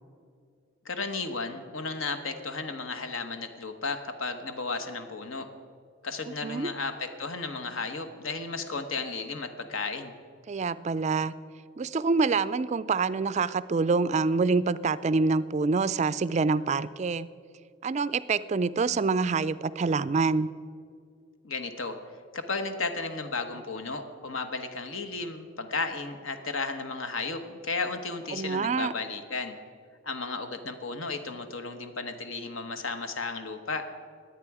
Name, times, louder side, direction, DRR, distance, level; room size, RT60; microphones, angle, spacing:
voice 1, 0.8-5.5 6.0-10.1 21.4-22.0 22.3-29.6 30.0-33.9, left 3 dB, 75° left, 7 dB, 1.1 m, -34 dB
voice 2, 10.5-11.3 11.8-17.3 17.8-20.5 28.3-28.9, right 4 dB, 35° right, 16 dB, 0.3 m, -26 dB
21.5 x 8.4 x 4.8 m, 2.3 s
head